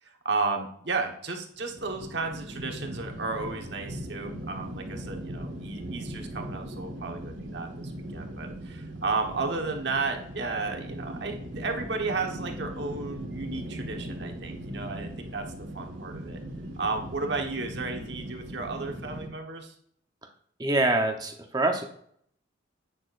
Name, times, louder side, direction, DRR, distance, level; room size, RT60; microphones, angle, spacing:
voice 1, 0.0-15.5 15.7-16.4 16.8-19.7, right 3 dB, 60° right, 3 dB, 1.3 m, -33 dB
sound 1, 1.6-19.3, right 1 dB, 85° right, 1.7 m, -39 dB
voice 2, 20.6-21.8, right 2 dB, 20° right, 4 dB, 0.9 m, -25 dB
10.0 x 9.0 x 2.6 m, 0.66 s
head